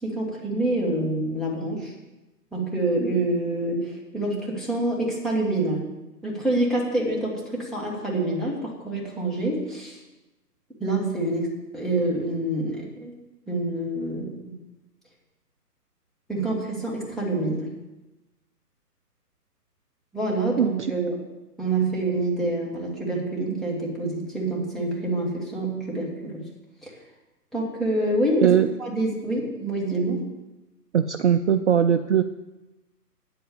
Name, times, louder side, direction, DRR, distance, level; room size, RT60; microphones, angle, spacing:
voice 1, 0.0-1.9 2.5-5.9 6.2-10.0 10.8-13.1 13.5-14.5 16.3-17.7 20.1-21.2 21.6-26.5 26.8-26.9 27.5-28.5 28.8-30.2, right 2 dB, ahead, -6 dB, 1.5 m, -27 dB
voice 2, 30.9-32.2, right 8 dB, 50° right, 9 dB, 0.5 m, -19 dB
9.2 x 8.1 x 7.0 m, 1.1 s
hypercardioid pair, 145°, 48 cm